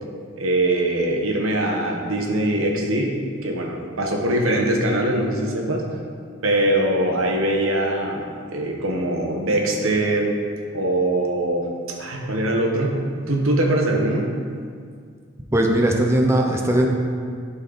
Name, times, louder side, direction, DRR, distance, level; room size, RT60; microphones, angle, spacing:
voice 1, 0.4-5.8 6.4-8.2 8.5-10.3 10.7-14.3, right 1 dB, 90° right, 1 dB, 1.1 m, -22 dB
voice 2, 15.5-16.9, right 1 dB, 15° right, 1 dB, 0.7 m, -19 dB
12.0 x 4.2 x 4.0 m, 2.1 s
head